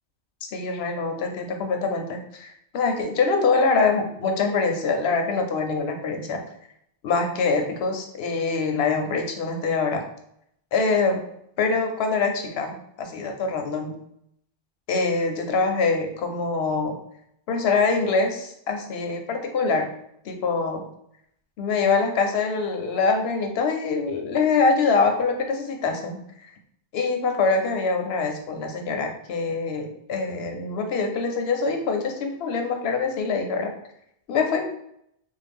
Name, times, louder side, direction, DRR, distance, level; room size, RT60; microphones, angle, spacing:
voice 1, 0.4-6.4 7.0-10.1 10.7-11.2 11.6-13.9 14.9-17.0 17.5-19.9 20.2-20.8 21.6-26.5 26.9-33.7 34.3-34.6, left 4 dB, 65° left, 4 dB, 0.7 m, -24 dB
2.5 x 2.2 x 3.4 m, 0.73 s
omnidirectional pair, 1.3 m